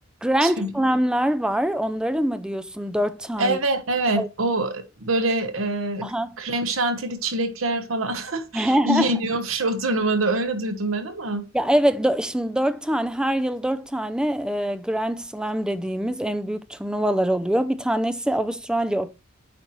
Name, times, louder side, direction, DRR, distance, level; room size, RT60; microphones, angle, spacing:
voice 1, 0.2-3.6 4.2-4.3 6.0-6.3 8.5-9.1 11.5-19.1, right 1 dB, 5° right, 0.4 m, -24 dB
voice 2, 3.4-11.4, right 2 dB, 90° right, 1.0 m, -25 dB
8.8 x 4.3 x 3.1 m
head